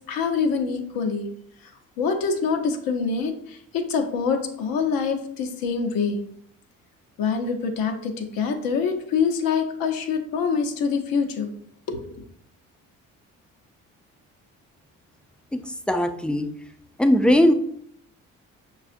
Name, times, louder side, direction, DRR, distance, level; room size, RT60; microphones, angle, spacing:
voice 1, 0.1-1.3 1.6-1.7 2.0-6.2 7.2-11.5 11.9-12.1, left 5 dB, 65° left, 5 dB, 0.7 m, -25 dB
voice 2, 15.9-16.5 17.0-17.5, equal, 5° left, 7 dB, 0.3 m, -19 dB
5.4 x 2.3 x 2.5 m, 0.67 s
hypercardioid pair, 50°, 37 cm